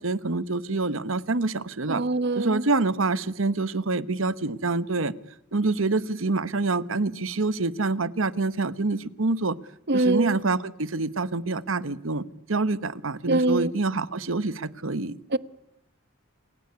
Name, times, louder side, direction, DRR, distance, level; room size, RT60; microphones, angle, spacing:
voice 1, 0.0-2.0 2.3-5.1 5.5-9.6 9.9-12.2 12.5-15.4, right 3 dB, 80° right, 1.1 m, -26 dB
voice 2, 1.9-2.6 9.9-10.4 13.3-13.7 15.3-15.4, right 2 dB, 55° right, 1.1 m, -23 dB
28.0 x 16.5 x 9.5 m
head